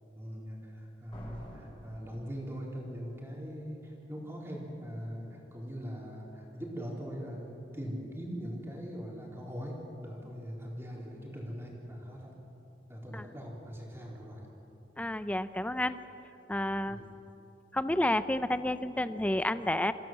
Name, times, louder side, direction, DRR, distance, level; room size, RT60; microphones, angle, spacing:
voice 1, 0.2-12.3 12.9-14.4 16.9-17.1, equal, 15° right, -3 dB, 4.0 m, -41 dB
Slam, 1.1-3.0, equal, 30° left, 5.9 m, -49 dB
voice 2, 15.0-16.0 16.5-17.0 17.7-19.9, left 1 dB, 10° left, 12 dB, 0.6 m, -30 dB
27.5 x 15.5 x 7.5 m, 3.0 s
head